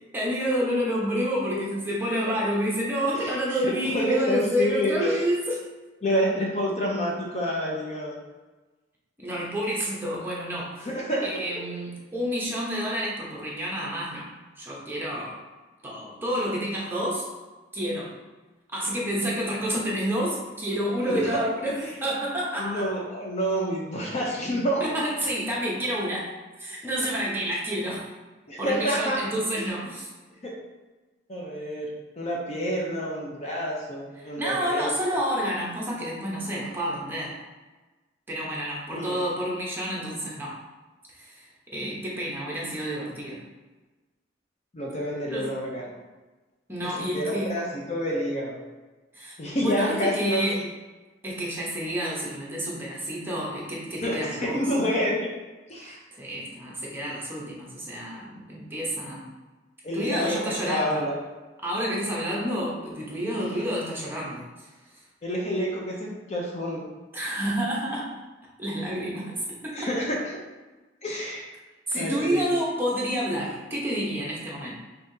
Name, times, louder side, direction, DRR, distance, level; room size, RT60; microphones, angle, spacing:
voice 1, 0.1-5.6 9.2-10.7 11.2-14.3 14.6-15.4 15.8-17.3 17.7-18.1 18.7-22.9 24.8-26.3 26.6-28.0 28.6-30.1 34.2-37.3 38.3-40.6 41.1-43.4 45.3-45.5 46.7-47.5 49.1-50.6 51.2-54.6 55.9-59.2 59.9-61.0 61.6-64.7 67.1-68.1 68.6-69.9 71.9-74.8, equal, 10° right, -5 dB, 0.9 m, -29 dB
voice 2, 3.1-5.2 6.0-8.2 10.8-11.4 21.0-21.4 21.8-21.9 22.6-24.8 28.5-29.2 29.6-29.7 30.4-30.5 31.3-34.9 38.9-39.2 44.7-45.8 46.8-48.6 49.4-50.6 54.0-55.3 55.7-56.0 59.8-61.2 63.4-63.5 65.2-66.9 69.7-70.2 71.0-71.5 72.0-72.5, equal, 35° left, -2 dB, 0.6 m, -28 dB
5.5 x 2.7 x 2.7 m, 1.2 s
head